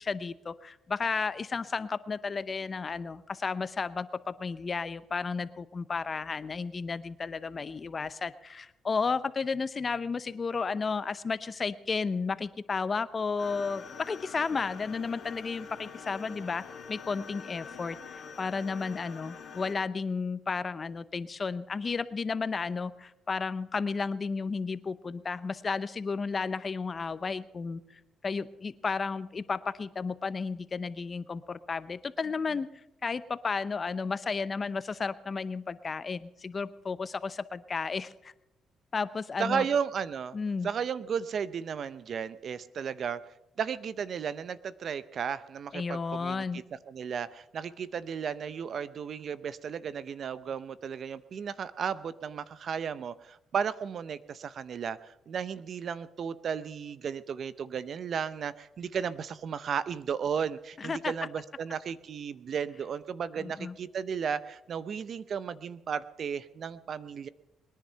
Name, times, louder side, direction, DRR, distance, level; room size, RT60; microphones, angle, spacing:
voice 1, 0.0-27.8 28.2-32.7 33.0-38.3 38.9-39.7 40.3-40.7 45.7-46.6 60.8-61.1 63.4-63.7, left 4 dB, 35° left, 15 dB, 0.7 m, -33 dB
sound 1, 13.4-19.7, left 6 dB, 60° left, 2.4 m, -45 dB
voice 2, 39.4-40.4 40.6-43.2 43.6-67.3, right 7 dB, 55° right, 16 dB, 0.7 m, -34 dB
21.0 x 10.5 x 5.7 m, 0.91 s
cardioid pair, 90°, 0 cm